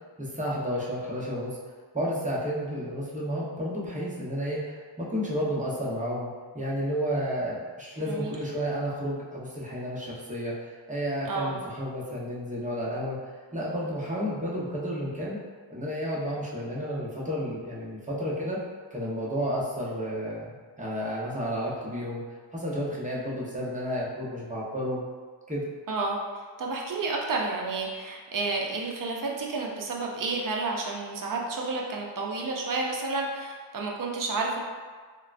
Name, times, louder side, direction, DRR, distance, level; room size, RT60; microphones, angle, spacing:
voice 1, 0.2-1.6 1.9-6.3 6.5-13.2 13.5-15.4 15.7-18.6 18.9-22.2 22.5-25.0 25.5-25.6, equal, 15° right, -6 dB, 0.8 m, -31 dB
voice 2, 25.9-26.2 26.6-34.6, right 3 dB, 45° right, -1 dB, 0.6 m, -30 dB
3.6 x 2.2 x 2.4 m, 1.5 s
cardioid pair, 50°, 46 cm